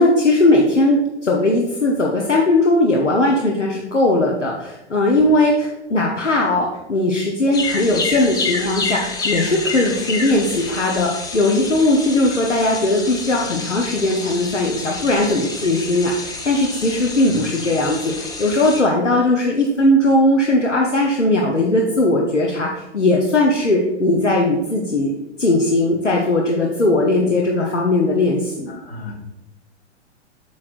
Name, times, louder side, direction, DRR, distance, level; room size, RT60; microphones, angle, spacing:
voice 1, 0.0-25.1 25.4-28.7, left 2 dB, 90° left, -1 dB, 0.9 m, -18 dB
sound 1, 7.5-18.8, left 3 dB, 10° left, 0.6 m, -29 dB
voice 2, 28.7-29.1, left 3 dB, 65° left, 0 dB, 2.1 m, -33 dB
8.3 x 6.3 x 2.5 m, 0.96 s
figure-of-eight pair, 100°, 35 cm